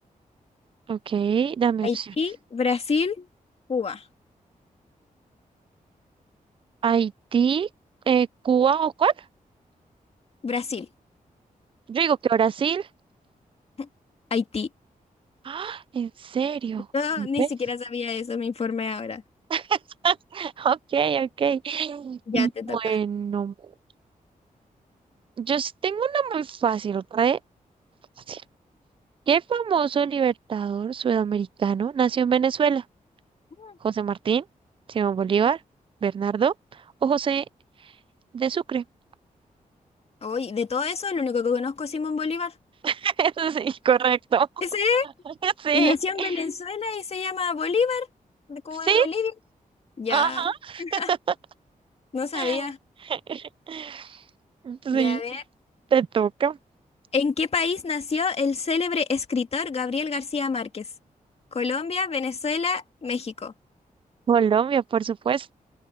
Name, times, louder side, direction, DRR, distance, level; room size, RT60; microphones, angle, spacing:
voice 1, 0.9-2.1 6.8-7.7 8.1-9.1 11.9-12.9 15.4-16.9 17.2-17.5 19.5-19.8 20.0-23.5 25.4-27.4 28.3-28.4 29.3-32.8 33.8-34.4 34.9-35.6 36.0-36.5 37.0-37.4 38.3-38.8 42.8-44.5 45.4-46.3 48.8-49.1 50.1-51.2 52.3-52.7 53.0-54.2 54.6-55.2 55.9-56.6 64.3-65.5, right 7 dB, 40° right, 0.4 m, -24 dB
voice 2, 1.8-3.3 3.7-4.0 10.4-10.9 13.8-13.9 14.3-14.7 16.9-19.2 22.3-23.0 33.6-33.8 40.2-42.5 44.6-45.1 45.7-48.1 48.5-49.3 50.0-50.4 50.8-51.1 52.1-52.8 54.9-55.4 57.1-60.9 61.5-63.5, left 5 dB, 45° left, 2.0 m, -27 dB
open air
wide cardioid pair, 130°, 14 cm